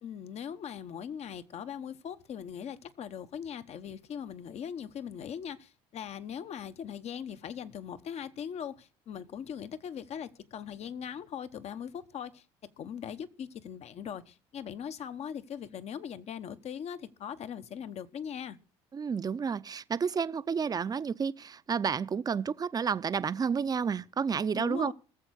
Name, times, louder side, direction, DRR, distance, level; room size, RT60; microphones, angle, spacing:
voice 1, 0.0-12.4 12.8-18.6 24.5-24.9, left 8 dB, 50° left, 1.1 m, -40 dB
voice 2, 18.9-24.9, right 6 dB, 30° right, 0.6 m, -30 dB
18.5 x 7.3 x 6.4 m
supercardioid pair, 80°, 14 cm